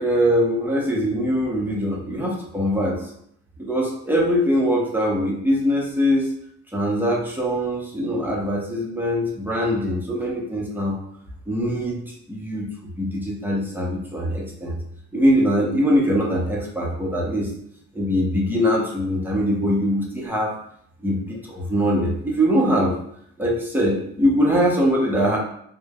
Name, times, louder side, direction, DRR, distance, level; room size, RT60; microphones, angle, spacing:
voice 1, 0.0-3.1 3.6-6.3 6.7-11.0 11.5-12.7 13.0-14.8 15.1-17.5 17.9-20.5 21.0-22.9 23.4-25.4, equal, 5° right, -3 dB, 0.7 m, -22 dB
3.1 x 2.1 x 2.2 m, 0.69 s
cardioid pair, 90°, 30 cm